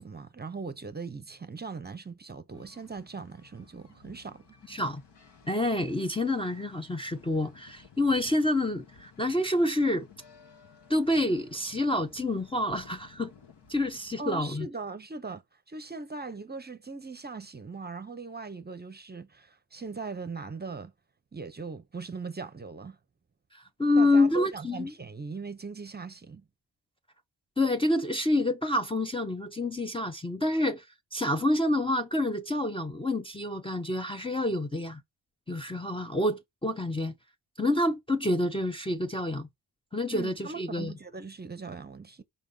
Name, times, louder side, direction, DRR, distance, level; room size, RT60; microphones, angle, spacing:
voice 1, 0.0-4.4 14.2-15.4 15.7-20.9 21.3-23.0 24.0-26.4 40.1-42.2, right 4 dB, 25° right, 0.7 m, -40 dB
sound 1, 2.5-14.4, left 6 dB, 70° left, 1.7 m, -56 dB
voice 2, 4.7-5.0 5.5-10.1 10.9-13.3 13.7-14.7 23.5-24.9 27.6-30.9 31.1-35.0 35.5-37.1 37.6-39.5 39.9-40.9, left 1 dB, 15° left, 0.6 m, -28 dB
5.4 x 3.6 x 5.4 m
wide cardioid pair, 120°, 43 cm